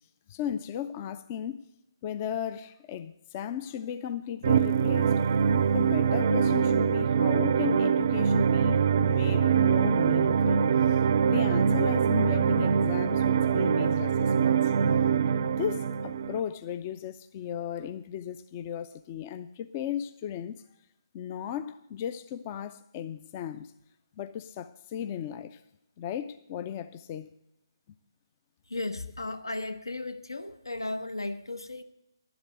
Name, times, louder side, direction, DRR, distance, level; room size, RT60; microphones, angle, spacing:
voice 1, 0.3-1.6 2.0-5.1 5.7-14.7 15.4-20.6 21.1-23.7 24.2-25.6 26.0-27.3, left 9 dB, 25° left, 0.4 m, -36 dB
sound 1, 4.4-16.4, right 7 dB, 40° right, 0.5 m, -24 dB
voice 2, 28.7-31.8, left 2 dB, 80° left, 1.1 m, -35 dB
11.0 x 7.9 x 7.8 m
figure-of-eight pair, 145°, 2 cm